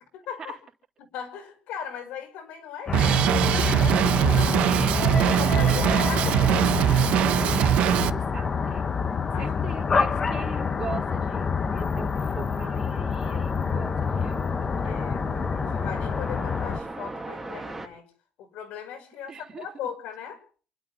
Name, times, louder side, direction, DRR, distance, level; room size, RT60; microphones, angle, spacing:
voice 1, 0.1-0.6 1.0-4.7 5.1-6.9 9.3-9.5 14.8-15.2 15.6-18.1 18.4-20.4, left 8 dB, 80° left, 6 dB, 5.1 m, -38 dB
sound 1, 2.9-16.8, left 5 dB, 25° left, 1.0 m, -27 dB
Drum kit, 2.9-8.1, right 11 dB, 65° right, 1.0 m, -22 dB
voice 2, 4.6-5.1 7.2-9.0 9.4-14.4 14.8-14.9 19.3-19.7, right 6 dB, 30° right, 1 dB, 3.4 m, -41 dB
sound 2, 11.5-17.9, right 2 dB, 10° right, 2.2 m, -39 dB
28.5 x 12.0 x 4.0 m, 0.42 s
cardioid pair, 175°, 2 cm